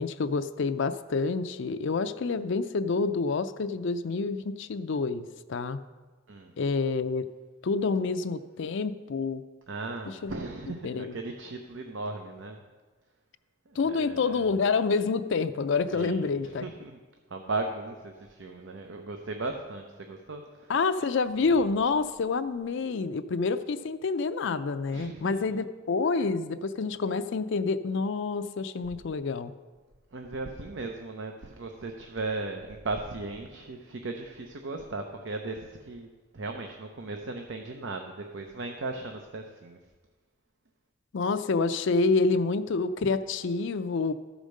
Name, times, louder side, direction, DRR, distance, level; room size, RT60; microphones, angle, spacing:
voice 1, 0.0-5.8 6.6-7.3 7.6-9.4 10.1-10.3 10.8-11.2 13.8-16.7 20.7-29.5 41.1-44.1, left 4 dB, 65° left, 10 dB, 0.5 m, -28 dB
voice 2, 9.7-12.6 13.7-14.5 15.9-17.0 17.3-20.7 24.9-25.5 30.1-36.1 36.3-39.8, right 3 dB, 65° right, 4 dB, 0.7 m, -37 dB
13.0 x 5.1 x 6.4 m, 1.3 s
head